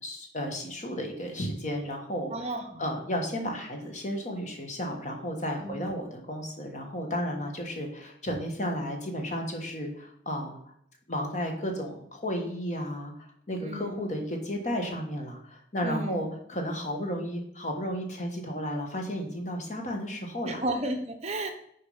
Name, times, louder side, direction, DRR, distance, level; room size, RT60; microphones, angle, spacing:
voice 1, 0.0-2.5 2.8-10.6 11.1-20.6, equal, 40° left, 2 dB, 1.4 m, -33 dB
voice 2, 2.3-2.8 5.6-5.9 13.6-14.0 15.8-16.3 20.4-21.5, right 1 dB, 35° right, 5 dB, 0.8 m, -33 dB
6.4 x 4.6 x 5.6 m, 0.69 s
head